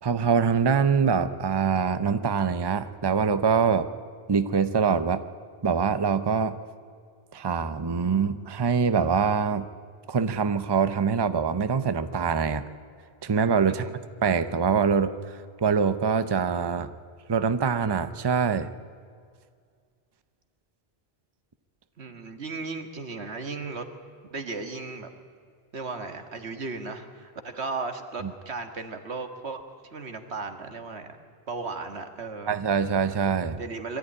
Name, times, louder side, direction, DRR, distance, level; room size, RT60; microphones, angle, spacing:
voice 1, 0.0-3.9 4.3-5.2 5.6-6.6 7.3-9.7 10.1-12.6 13.2-13.9 14.2-16.9 17.3-18.7 32.5-33.6, right 6 dB, 25° right, 12 dB, 0.7 m, -24 dB
voice 2, 22.0-23.8 24.3-25.1 25.7-29.6 29.9-31.2 31.5-32.5 33.6-34.0, right 3 dB, 85° right, 6 dB, 1.9 m, -35 dB
23.5 x 14.0 x 9.8 m, 2.2 s
omnidirectional pair, 1.1 m